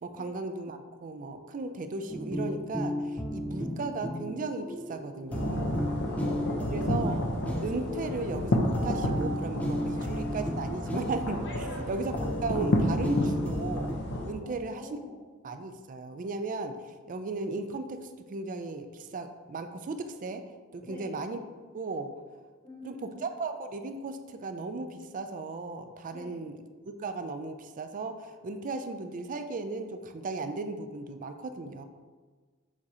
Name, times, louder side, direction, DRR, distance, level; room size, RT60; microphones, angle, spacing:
voice 1, 0.0-5.9 6.7-7.3 7.6-12.1 12.4-13.9 14.2-15.0 15.4-16.8 17.1-18.0 18.3-20.4 20.7-21.4 21.7-22.1 22.8-26.6 27.0-31.8, right 3 dB, 35° right, 8 dB, 0.4 m, -36 dB
sound 1, 2.1-13.9, equal, 5° left, 0.6 m, -34 dB
sound 2, 5.3-14.3, left 1 dB, 55° left, 0.8 m, -31 dB
voice 2, 6.0-7.1 9.9-10.1 11.6-12.2 14.4-15.2 20.8-21.2 22.6-23.2 26.1-26.4, left 2 dB, 25° left, -7 dB, 1.6 m, -48 dB
7.2 x 2.8 x 4.8 m, 1.4 s
head